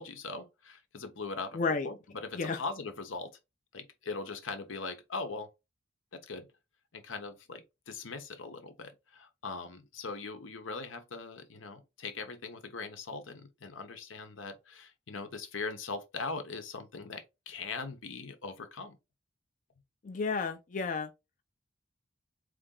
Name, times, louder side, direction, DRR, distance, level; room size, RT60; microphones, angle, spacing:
voice 1, 0.0-1.6 1.8-3.3 3.7-5.5 6.1-6.5 6.9-19.0, left 4 dB, 85° left, 0.9 m, -40 dB
voice 2, 1.5-1.9 2.3-2.6 20.0-21.1, left 4 dB, 40° left, 0.4 m, -31 dB
3.9 x 3.3 x 3.7 m
head